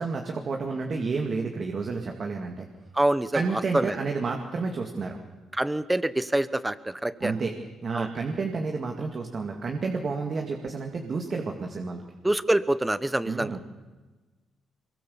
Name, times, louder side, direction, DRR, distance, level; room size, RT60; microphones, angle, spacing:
voice 1, 0.0-2.7 3.3-5.2 7.2-7.5 7.8-12.0 13.3-13.6, right 4 dB, 45° right, 3 dB, 2.3 m, -30 dB
voice 2, 2.9-4.0 5.5-7.3 7.9-8.1 12.2-13.6, right 1 dB, 10° right, 15 dB, 1.1 m, -26 dB
23.0 x 22.5 x 7.1 m, 1.3 s
cardioid pair, 90°, 0 cm